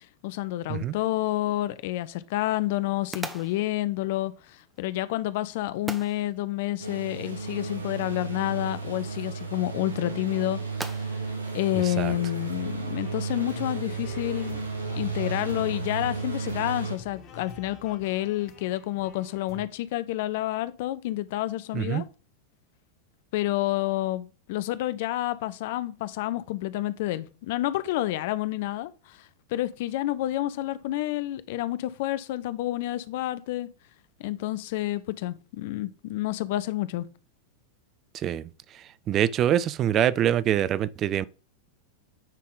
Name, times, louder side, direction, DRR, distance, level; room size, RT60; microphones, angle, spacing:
voice 1, 0.0-10.6 10.9-11.0 11.5-14.7 14.9-22.0 23.3-29.2 29.5-33.7 34.2-37.1, left 15 dB, 50° left, 0.5 m, -29 dB
sound 1, 1.0-12.7, right 2 dB, 10° right, 0.7 m, -45 dB
sound 2, 6.8-17.0, right 4 dB, 75° right, 1.2 m, -33 dB
sound 3, 12.6-19.7, left 4 dB, 35° left, 1.9 m, -48 dB
voice 2, 39.1-41.2, right 10 dB, 30° right, 0.3 m, -24 dB
9.8 x 3.7 x 3.8 m
figure-of-eight pair, 90°, 0 cm